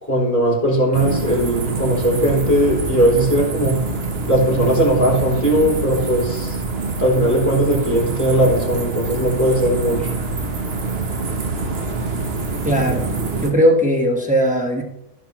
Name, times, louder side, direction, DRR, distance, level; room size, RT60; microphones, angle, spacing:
voice 1, 0.0-3.8 4.3-6.6 7.0-10.1, right 1 dB, 10° left, -5 dB, 3.6 m, -18 dB
sound 1, 0.9-13.5, right 3 dB, 45° right, 1.2 m, -25 dB
voice 2, 12.6-13.1 13.4-14.8, equal, 5° right, 0 dB, 1.3 m, -18 dB
16.0 x 6.4 x 3.1 m, 0.84 s
omnidirectional pair, 1.6 m